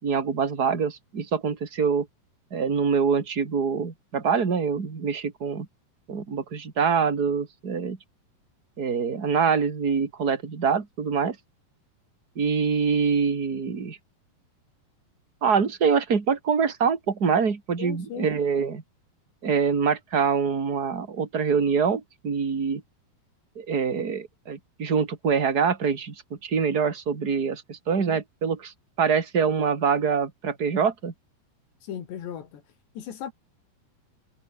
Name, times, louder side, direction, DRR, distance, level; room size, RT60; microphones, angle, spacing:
voice 1, 0.0-2.1 2.5-5.7 6.1-8.0 8.8-11.4 12.4-14.0 15.4-18.8 19.4-22.8 23.6-26.1 26.4-31.1, right 6 dB, 25° right, 2.7 m, -25 dB
voice 2, 17.8-18.3 28.0-28.2 31.8-32.6 32.9-33.3, left 9 dB, 85° left, 5.1 m, -37 dB
omnidirectional pair, 4.8 m